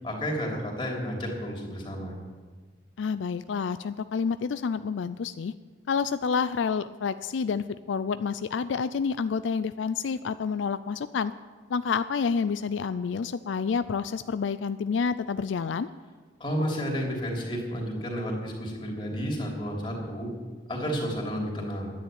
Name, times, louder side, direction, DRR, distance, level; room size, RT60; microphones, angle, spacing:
voice 1, 0.0-2.2 16.4-20.3 20.7-21.9, equal, 25° left, -1 dB, 3.2 m, -31 dB
voice 2, 3.0-5.5 5.9-11.3 11.7-15.9, left 5 dB, 80° left, 13 dB, 0.4 m, -29 dB
11.5 x 10.0 x 9.1 m, 1.4 s
head